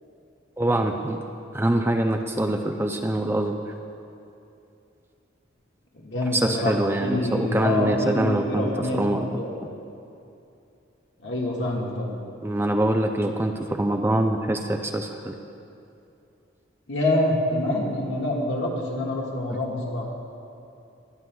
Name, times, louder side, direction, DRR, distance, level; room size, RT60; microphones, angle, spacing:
voice 1, 0.6-1.2 1.5-3.5 6.3-9.3 12.4-15.4 19.5-19.6, right 1 dB, 10° right, 4 dB, 0.4 m, -24 dB
voice 2, 5.9-6.7 7.0-9.5 11.2-12.1 16.9-20.0, left 1 dB, 70° left, -3 dB, 1.7 m, -26 dB
20.5 x 9.2 x 2.3 m, 2.6 s
head